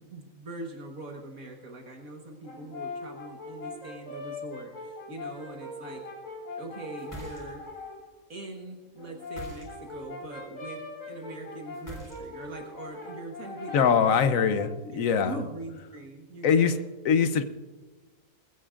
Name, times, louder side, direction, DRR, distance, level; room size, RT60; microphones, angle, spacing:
voice 1, 0.0-6.0 6.6-7.6 8.3-15.0 15.2-16.8, right 2 dB, 65° right, 1 dB, 1.8 m, -42 dB
Brass instrument, 2.4-8.0 9.0-14.8, left 2 dB, 90° left, 6.2 m, -41 dB
sound 1, 7.0-7.8 9.2-10.1 11.7-12.6, right 1 dB, 10° left, 3.7 m, -44 dB
voice 2, 13.7-15.3 16.4-16.7 17.1-17.4, left 7 dB, 65° left, 10 dB, 1.1 m, -22 dB
21.0 x 15.5 x 2.5 m, 1.2 s
omnidirectional pair, 1.6 m